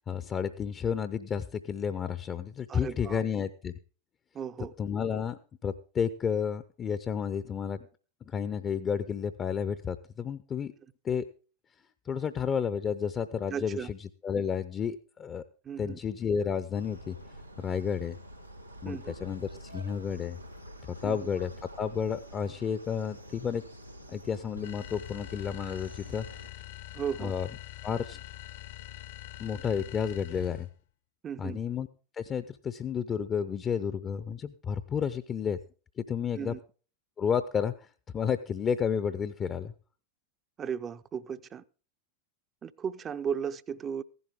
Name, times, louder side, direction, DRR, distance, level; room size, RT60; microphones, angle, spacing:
voice 1, 0.1-3.7 4.8-7.9 8.3-10.7 11.0-11.3 12.1-14.0 14.2-15.4 15.8-17.2 17.6-18.2 18.8-20.4 20.9-21.5 21.8-23.6 24.1-26.3 27.2-27.5 27.8-28.2 29.4-30.7 31.4-31.9 32.1-35.6 36.0-36.5 37.2-37.9 38.1-39.7, left 7 dB, 25° left, 0.6 m, -31 dB
voice 2, 2.7-3.2 4.3-4.7 13.5-13.9 15.6-16.0 18.9-19.1 21.0-21.2 26.9-27.3 31.2-31.6 36.3-36.6 40.6-41.6 42.6-44.0, right 7 dB, 25° right, 0.5 m, -35 dB
sound 1, 16.7-26.5, right 1 dB, 90° right, 0.9 m, -47 dB
sound 2, 24.6-30.8, left 15 dB, 60° left, 0.9 m, -44 dB
15.0 x 11.0 x 3.6 m
figure-of-eight pair, 90°, 0 cm